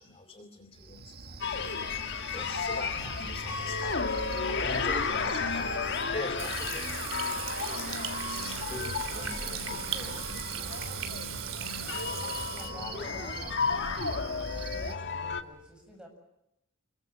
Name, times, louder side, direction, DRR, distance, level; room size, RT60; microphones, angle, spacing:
voice 1, 0.0-4.0 4.4-5.8 6.1-7.2 7.7-11.5 12.6-13.1, left 2 dB, 30° left, 7 dB, 2.6 m, -43 dB
Cricket, 0.7-15.0, right 4 dB, 50° right, 1.6 m, -43 dB
sound 1, 1.4-15.4, left 5 dB, 60° left, 1.8 m, -33 dB
voice 2, 4.8-5.2 12.5-13.9 14.4-16.1, left 1 dB, 5° right, 3 dB, 7.8 m, -51 dB
Water tap faucet / Sink (filling or washing), 6.4-12.7, right 8 dB, 70° right, 3.3 m, -38 dB
29.0 x 23.5 x 7.5 m, 0.87 s
head